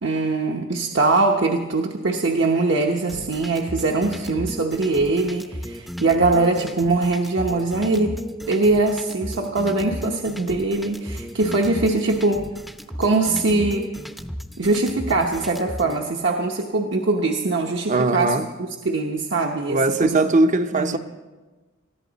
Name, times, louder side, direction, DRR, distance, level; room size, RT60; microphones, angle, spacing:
voice 1, 0.0-8.2 8.5-12.4 13.0-13.8 14.6-18.4 18.8-20.3 20.7-21.0, right 3 dB, 65° right, 1 dB, 1.0 m, -22 dB
sound 1, 3.1-16.0, equal, ahead, 0.7 m, -34 dB
voice 2, 17.9-18.5 19.7-21.0, right 2 dB, 40° right, 8 dB, 0.7 m, -20 dB
20.0 x 14.0 x 4.0 m, 1.2 s
head